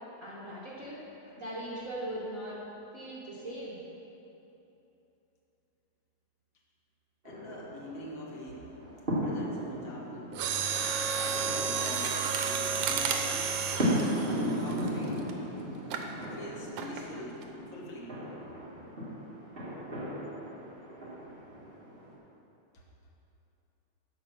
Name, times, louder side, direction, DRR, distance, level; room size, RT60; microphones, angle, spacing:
voice 1, 0.2-1.0 1.4-2.6 2.9-3.8, right 1 dB, 65° right, -7 dB, 0.8 m, -39 dB
voice 2, 7.2-8.8 9.2-10.3 11.1-15.5 16.2-18.2 22.7-22.8, left 1 dB, 75° left, -3 dB, 0.7 m, -44 dB
sound 1, 7.2-22.1, equal, 25° right, 1.5 m, -36 dB
Mechanisms, 10.3-15.3 15.9-16.1 16.8-17.1 17.4-17.5, right 6 dB, 80° right, 2.2 m, -31 dB
14.0 x 4.7 x 6.0 m, 3.0 s
omnidirectional pair, 3.5 m